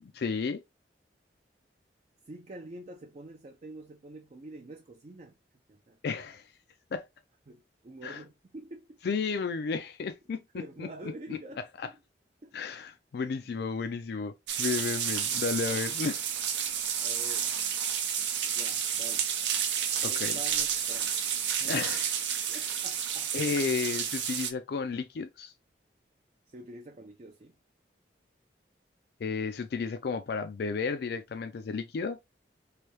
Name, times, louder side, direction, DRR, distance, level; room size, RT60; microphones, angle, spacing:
voice 1, 0.0-0.6 6.0-6.5 6.9-7.1 8.0-8.2 9.0-11.4 11.8-11.9 12.5-16.2 20.0-20.4 21.6-22.1 22.5-22.6 23.3-25.5 29.2-32.2, left 5 dB, 65° left, 0.4 m, -33 dB
voice 2, 2.2-5.4 5.7-6.0 7.5-9.0 10.5-12.0 12.4-12.5 17.0-17.6 18.4-19.3 20.0-21.1 21.6-21.8 22.5-23.3 26.5-27.6, right 2 dB, 40° right, 0.4 m, -46 dB
sound 1, 14.5-24.5, right 8 dB, 85° right, 0.6 m, -31 dB
3.3 x 2.7 x 3.0 m
head